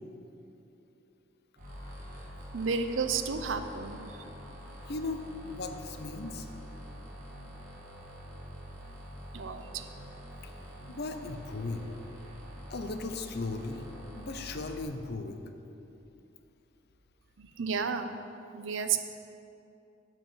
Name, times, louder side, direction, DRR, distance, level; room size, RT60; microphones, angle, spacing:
sound 1, 1.6-14.8, equal, 45° right, 1.6 m, -46 dB
voice 1, 2.5-4.0 9.3-9.8 17.4-18.2 18.5-19.0, right 5 dB, 80° right, 9 dB, 0.6 m, -32 dB
voice 2, 4.9-6.5 10.4-10.5 10.9-11.9 12.7-13.8 14.2-15.4, left 3 dB, 55° left, 7 dB, 0.7 m, -37 dB
9.8 x 4.8 x 7.8 m, 2.7 s
head